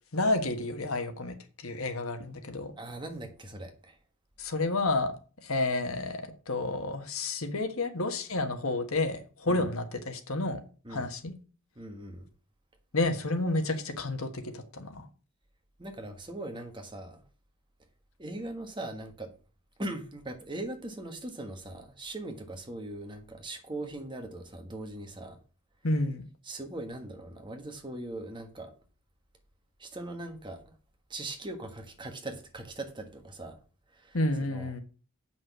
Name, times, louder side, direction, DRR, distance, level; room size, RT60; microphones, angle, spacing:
voice 1, 0.1-2.7 4.4-5.1 5.4-10.6 10.9-11.3 12.9-15.0 25.8-26.2 34.1-34.8, left 2 dB, 75° left, 1.4 m, -30 dB
voice 2, 2.8-4.0 9.5-9.7 10.8-11.1 11.7-12.3 15.8-17.2 18.2-19.3 19.8-25.4 26.4-28.7 29.8-30.6 31.1-33.6 33.9-34.2 34.5-34.7, right 1 dB, 20° right, 1.4 m, -40 dB
7.9 x 6.0 x 6.1 m
head